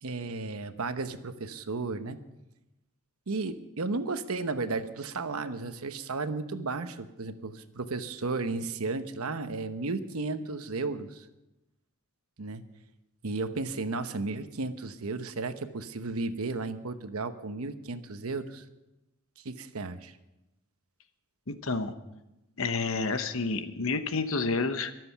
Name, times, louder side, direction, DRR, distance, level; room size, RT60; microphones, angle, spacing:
voice 1, 0.0-2.2 3.3-11.3 12.4-12.6 13.2-18.6 19.4-20.2, right 3 dB, 80° right, 10 dB, 1.0 m, -34 dB
voice 2, 21.5-21.9 22.6-24.9, left 4 dB, 65° left, 9 dB, 1.0 m, -29 dB
22.5 x 7.7 x 5.9 m, 0.97 s
head